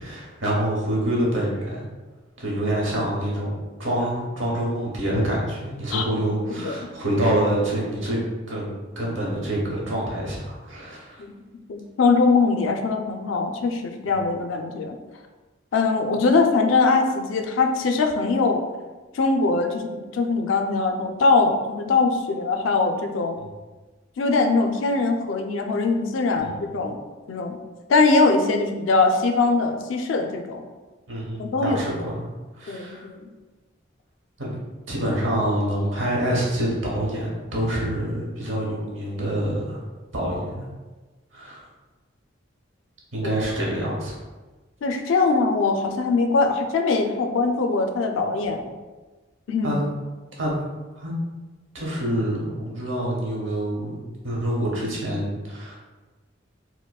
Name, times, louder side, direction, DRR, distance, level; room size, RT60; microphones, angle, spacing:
voice 1, 0.0-1.8 2.4-8.2 8.5-11.2 23.4-23.5 26.4-26.7 31.1-32.3 32.5-33.1 34.4-34.5 34.9-39.8 40.1-40.6 41.3-41.7 43.1-44.1 49.6-49.8 50.4-50.6 51.0-51.1 51.7-55.8, right 1 dB, 75° right, -4 dB, 1.0 m, -26 dB
voice 2, 6.5-6.9 11.2-11.3 11.7-14.9 15.7-18.6 19.1-23.4 24.2-27.0 27.3-27.6 27.9-30.6 31.4-31.8 32.7-33.3 44.8-48.6 49.5-49.7, left 3 dB, 85° left, 5 dB, 0.4 m, -22 dB
4.4 x 2.1 x 2.3 m, 1.3 s
head